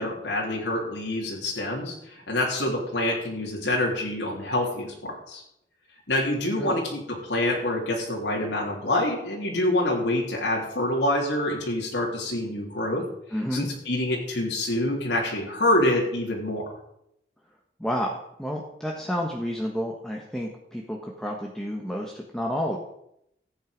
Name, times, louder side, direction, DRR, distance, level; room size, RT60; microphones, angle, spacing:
voice 1, 0.0-5.4 6.1-13.0 13.5-16.7, left 1 dB, 90° left, -2 dB, 3.4 m, -26 dB
voice 2, 13.3-13.7 17.8-22.8, equal, 5° left, -1 dB, 1.3 m, -30 dB
14.5 x 9.0 x 5.2 m, 0.77 s
head